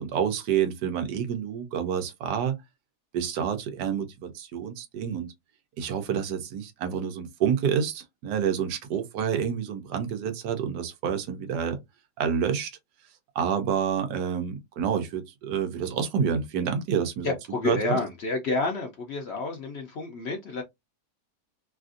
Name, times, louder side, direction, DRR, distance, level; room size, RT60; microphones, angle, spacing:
voice 1, 0.0-2.6 3.1-5.3 5.8-11.8 12.2-12.7 13.3-17.3 17.6-18.0, right 7 dB, 90° right, 1.3 m, -28 dB
voice 2, 17.2-20.6, left 3 dB, 60° left, 0.7 m, -29 dB
3.2 x 2.5 x 2.4 m
omnidirectional pair, 1.7 m